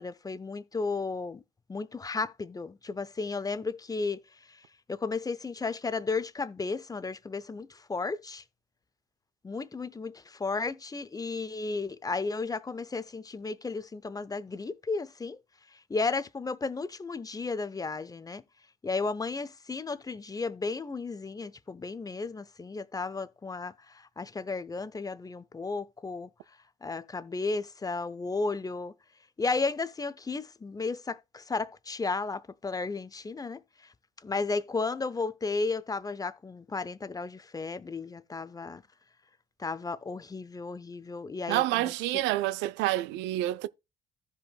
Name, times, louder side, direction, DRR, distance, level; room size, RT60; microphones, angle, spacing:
voice 1, 0.0-1.4 1.7-4.2 4.9-8.4 9.4-15.4 15.9-18.4 18.8-26.3 26.8-28.9 29.4-33.6 34.2-38.8 39.6-41.8, left 4 dB, 20° left, 0.6 m, -34 dB
voice 2, 41.5-43.7, right 16 dB, 75° right, 0.4 m, -28 dB
15.0 x 5.1 x 2.2 m
hypercardioid pair, 60°, 19 cm